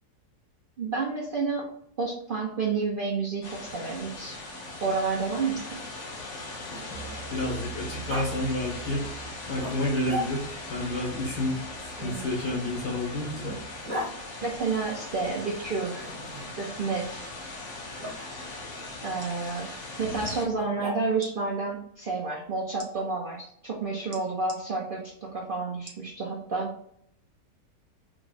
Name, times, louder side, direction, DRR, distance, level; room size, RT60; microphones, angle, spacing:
voice 1, 0.8-1.6 2.0-4.4 4.8-5.8 12.0-12.3 14.4-16.1 16.6-17.3 19.0-19.7 20.0-26.7, right 4 dB, 85° right, -2 dB, 0.4 m, -30 dB
sound 1, 3.4-20.4, left 2 dB, 50° left, 1.1 m, -40 dB
Growling, 4.0-7.4 8.1-8.3 9.6-10.7 12.0-14.1 16.0-16.7 18.0-18.2 20.5-21.3, left 1 dB, 30° right, 1.2 m, -39 dB
voice 2, 7.3-9.0 9.4-11.6 12.0-13.5 20.0-20.3, left 1 dB, 70° left, -4 dB, 2.4 m, -30 dB
sound 2, 19.2-19.4 20.2-20.4 21.1-21.3 22.8-22.9 24.1-24.6 25.9-26.1 26.7-26.8, right 4 dB, 50° right, 0.9 m, -45 dB
4.8 x 3.0 x 2.5 m, 0.69 s
omnidirectional pair, 1.9 m